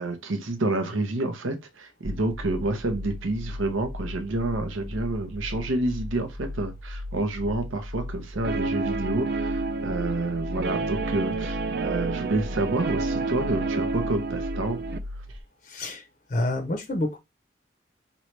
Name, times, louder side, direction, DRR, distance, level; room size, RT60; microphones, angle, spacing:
voice 1, 0.0-14.8, right 2 dB, 85° right, 0.7 m, -29 dB
sound 1, 2.0-15.4, left 1 dB, 25° right, 0.8 m, -37 dB
Guitar, 8.4-15.0, right 3 dB, 55° right, 0.4 m, -29 dB
voice 2, 15.6-16.0 16.3-17.2, left 1 dB, 40° left, 0.6 m, -28 dB
5.3 x 3.1 x 3.2 m
head